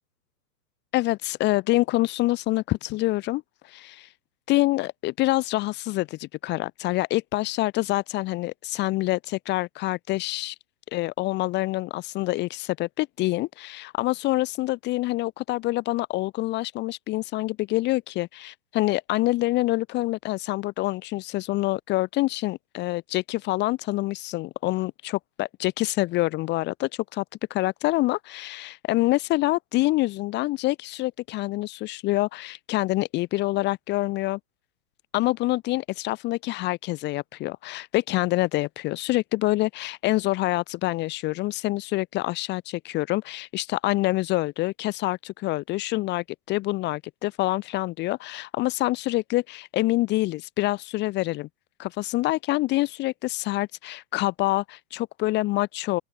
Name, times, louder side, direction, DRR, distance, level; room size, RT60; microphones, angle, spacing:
voice 1, 0.9-4.1 4.5-10.5 10.9-27.2 27.5-34.4 35.1-51.5 51.8-56.0, left 19 dB, 20° left, 1.1 m, -26 dB
open air
hypercardioid pair, 145°, 48 cm